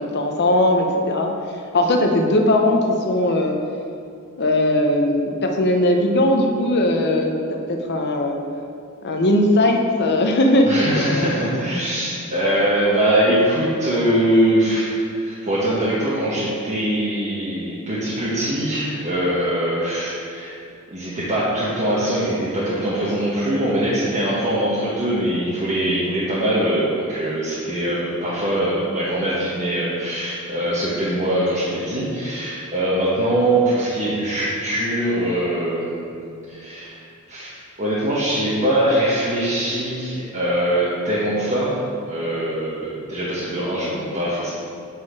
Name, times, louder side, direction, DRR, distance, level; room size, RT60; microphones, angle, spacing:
voice 1, 0.0-1.3 1.7-3.6 4.4-8.4 9.0-11.5, left 1 dB, 50° left, 3 dB, 0.8 m, -19 dB
voice 2, 10.7-20.6 20.9-41.7 42.1-44.5, right 1 dB, 35° right, -9 dB, 1.2 m, -22 dB
7.9 x 4.3 x 4.9 m, 2.5 s
head